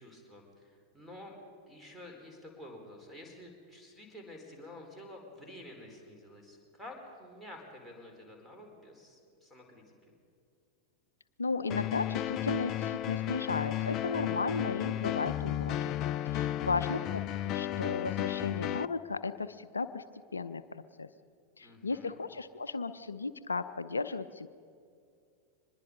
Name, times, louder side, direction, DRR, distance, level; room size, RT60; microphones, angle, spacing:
voice 1, 0.0-1.4 1.7-9.8 21.6-22.2, left 1 dB, 5° right, 2 dB, 4.6 m, -50 dB
voice 2, 11.4-15.8 16.3-20.0 20.3-21.1 21.6-24.5, left 4 dB, 75° left, 12 dB, 0.6 m, -35 dB
sound 1, 11.7-18.9, left 12 dB, 35° left, 0.4 m, -33 dB
24.5 x 21.0 x 5.4 m, 2.3 s
figure-of-eight pair, 90°, 0 cm